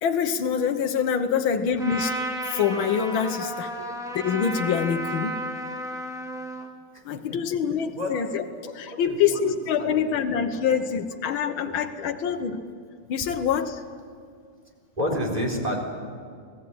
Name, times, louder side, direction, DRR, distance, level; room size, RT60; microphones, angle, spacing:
voice 1, 0.0-2.2 2.5-3.7 4.1-5.4 7.1-8.4 8.8-12.6 13.1-13.8, left 7 dB, 80° left, 5 dB, 1.9 m, -25 dB
Trumpet, 1.8-6.7, right 1 dB, ahead, 2.2 m, -33 dB
voice 2, 6.9-7.4 7.9-8.2 8.6-9.4 9.8-10.2 10.7-10.8 11.2-12.4 15.0-15.8, equal, 20° right, 0 dB, 4.1 m, -32 dB
26.5 x 18.0 x 8.6 m, 2.2 s
omnidirectional pair, 2.2 m